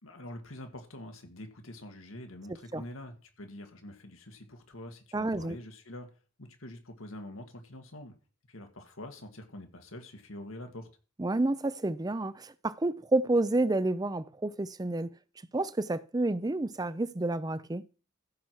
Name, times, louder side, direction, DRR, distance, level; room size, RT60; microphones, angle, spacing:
voice 1, 0.0-6.1 6.4-8.1 8.5-10.9, left 1 dB, 85° left, 2.0 m, -45 dB
voice 2, 5.1-5.6 11.2-15.1 15.5-17.8, right 2 dB, 20° right, 0.5 m, -29 dB
14.5 x 5.9 x 4.8 m
head